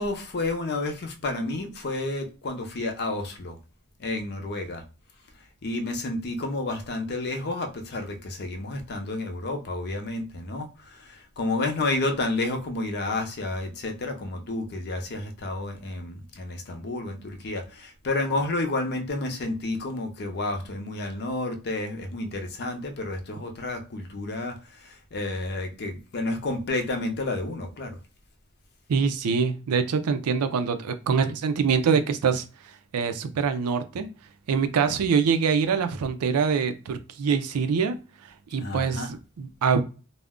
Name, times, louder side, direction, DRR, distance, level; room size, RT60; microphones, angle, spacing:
voice 1, 0.0-3.6 4.0-4.8 5.6-28.0 38.6-39.1, left 2 dB, 50° left, 0.6 m, -30 dB
voice 2, 28.9-32.4 32.9-34.1 34.5-38.0 38.2-39.8, right 6 dB, 75° right, 0.4 m, -24 dB
2.4 x 2.1 x 3.5 m
head